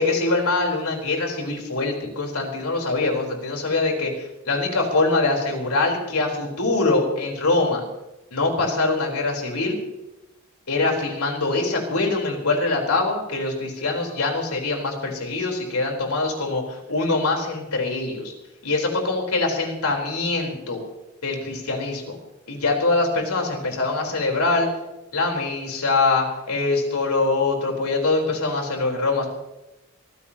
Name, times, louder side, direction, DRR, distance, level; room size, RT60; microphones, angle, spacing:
voice 1, 0.0-7.8 8.3-9.8 10.7-18.3 18.6-20.8 21.2-22.2 22.5-24.7 25.1-29.3, left 3 dB, 85° left, 1 dB, 3.9 m, -23 dB
24.5 x 15.0 x 2.9 m, 0.97 s
head